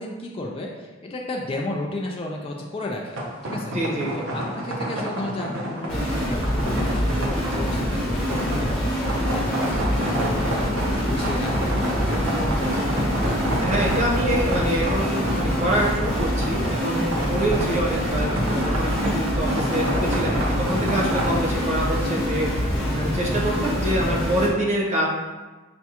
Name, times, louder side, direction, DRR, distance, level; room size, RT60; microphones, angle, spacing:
voice 1, 0.0-3.2 3.4-3.7 4.1-11.7 12.1-13.0 17.1-17.4 22.0-22.2, left 1 dB, 25° left, -1 dB, 0.3 m, -33 dB
sound 1, 3.1-21.4, right 1 dB, 75° right, 0.7 m, -29 dB
voice 2, 3.7-4.1 13.6-22.5 22.9-25.1, right 1 dB, 35° right, -4 dB, 0.8 m, -25 dB
sound 2, 5.9-24.5, equal, 5° left, 0.8 m, -25 dB
5.9 x 2.2 x 2.8 m, 1.2 s
head